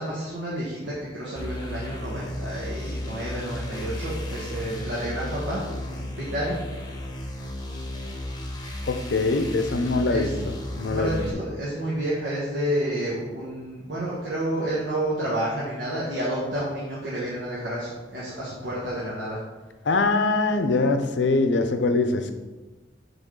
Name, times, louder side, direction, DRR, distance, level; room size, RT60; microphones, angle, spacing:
voice 1, 0.0-6.8 10.1-10.3 10.8-19.4, right 1 dB, 75° right, -7 dB, 1.3 m, -30 dB
sound 1, 1.4-11.3, left 1 dB, 25° left, 0.9 m, -34 dB
voice 2, 8.9-10.3 10.8-11.2 19.8-22.3, left 3 dB, 80° left, 7 dB, 0.6 m, -23 dB
8.1 x 3.6 x 3.8 m, 1.2 s
head